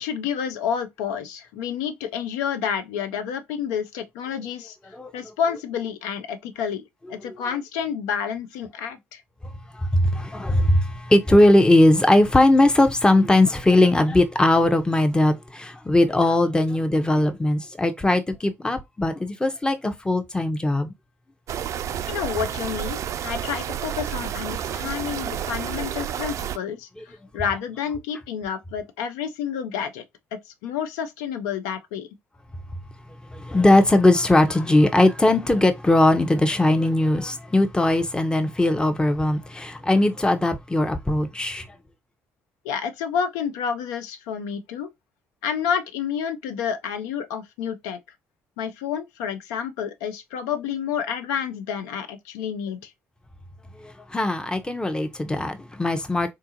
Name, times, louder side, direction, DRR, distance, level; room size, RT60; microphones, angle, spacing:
voice 1, 0.0-4.8 5.1-6.8 7.1-9.2 22.1-30.0 30.6-32.1 42.6-44.9 45.4-48.0 48.6-52.9, left 7 dB, 70° left, 0.5 m, -29 dB
voice 2, 9.7-20.9 27.0-27.1 33.3-41.7 53.8-56.3, left 1 dB, 10° left, 0.7 m, -19 dB
sound 1, 21.5-26.6, right 10 dB, 50° right, 0.3 m, -30 dB
3.8 x 2.3 x 2.8 m
figure-of-eight pair, 45°, 7 cm